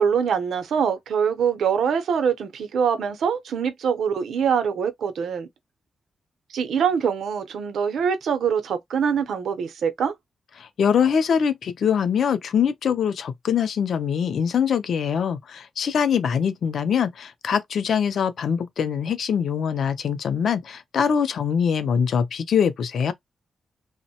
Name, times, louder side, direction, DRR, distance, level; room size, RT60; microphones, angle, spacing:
voice 1, 0.0-5.5 6.5-10.1, right 7 dB, 80° right, 0.6 m, -24 dB
voice 2, 10.6-23.1, left 7 dB, 65° left, 0.4 m, -23 dB
3.0 x 2.1 x 2.8 m
wide cardioid pair, 160°, 0 cm